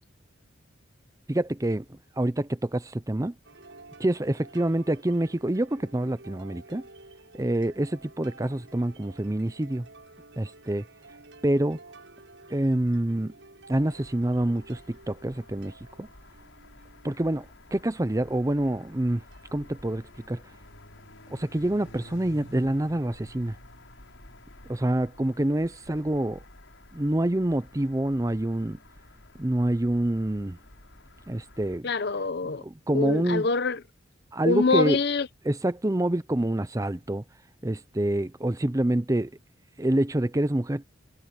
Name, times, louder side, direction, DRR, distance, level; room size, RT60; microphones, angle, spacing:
voice 1, 1.3-3.3 4.0-6.8 7.3-9.9 10.4-10.8 11.4-11.8 12.5-13.3 13.7-16.1 17.0-17.4 17.7-19.2 19.5-20.4 21.3-23.6 24.7-26.4 26.9-28.8 29.4-30.6 31.3-31.9 32.6-33.5 34.3-35.0 35.5-37.2 37.6-39.3 39.8-40.8, right 1 dB, 15° right, 0.6 m, -26 dB
sound 1, 3.4-21.3, right 3 dB, 70° right, 7.6 m, -53 dB
sound 2, 13.7-31.8, left 1 dB, 85° left, 7.0 m, -51 dB
voice 2, 31.8-32.6 32.9-33.8 34.4-35.3, left 4 dB, 55° left, 0.7 m, -25 dB
head